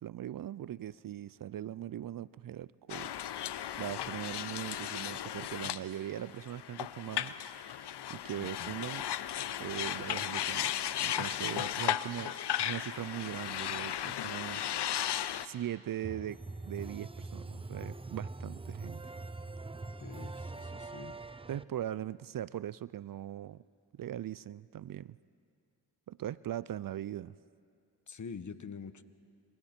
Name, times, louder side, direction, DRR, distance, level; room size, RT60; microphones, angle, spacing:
voice 1, 0.0-3.1 3.7-7.3 8.1-9.0 9.6-14.6 15.4-16.4 16.7-19.0 21.5-23.6 23.9-25.2 26.1-27.3, right 11 dB, 55° right, 0.4 m, -40 dB
sound 1, 2.9-15.5, left 10 dB, 70° left, 0.7 m, -36 dB
voice 2, 8.4-8.7 20.0-21.2 28.1-29.0, left 5 dB, 45° left, 1.1 m, -46 dB
sound 2, 16.0-21.6, right 3 dB, 15° right, 0.6 m, -43 dB
29.0 x 26.0 x 4.4 m
cardioid pair, 45°, 42 cm